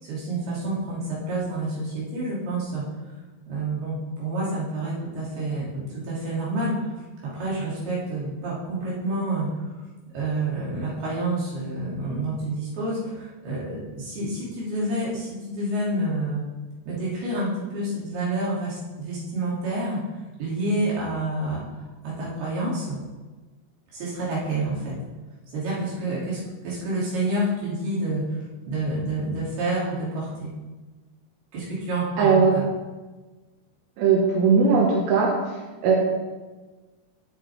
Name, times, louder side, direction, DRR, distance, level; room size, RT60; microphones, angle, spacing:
voice 1, 0.0-2.8 3.5-6.9 7.2-9.5 10.1-16.4 16.8-20.0 20.4-21.6 22.0-23.0 23.9-25.0 25.5-30.5 31.5-32.3, right 2 dB, 65° right, -7 dB, 4.9 m, -28 dB
voice 2, 32.2-32.5 34.0-35.3 35.8-36.0, right 5 dB, 90° right, -3 dB, 4.0 m, -18 dB
21.0 x 9.2 x 3.6 m, 1.2 s
omnidirectional pair, 4.8 m